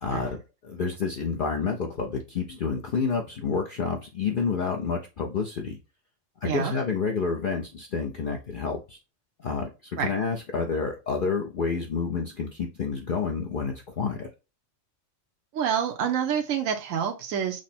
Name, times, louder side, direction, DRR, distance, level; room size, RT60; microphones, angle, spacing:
voice 1, 0.0-5.8 6.4-9.0 9.4-14.3, left 5 dB, 55° left, 1 dB, 0.6 m, -29 dB
voice 2, 6.4-6.7 10.0-10.1 15.5-17.6, right 8 dB, 80° right, 3 dB, 1.0 m, -27 dB
6.0 x 2.1 x 4.2 m, 0.29 s
omnidirectional pair, 1.3 m